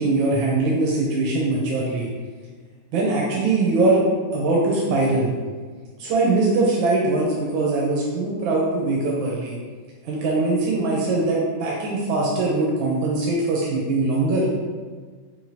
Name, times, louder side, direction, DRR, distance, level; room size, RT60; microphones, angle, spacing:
voice 1, 0.0-2.1 2.9-4.0 4.3-5.3 6.0-9.6 10.0-14.5, right 2 dB, 85° right, -3 dB, 1.4 m, -21 dB
5.1 x 2.7 x 2.6 m, 1.5 s
omnidirectional pair, 2.1 m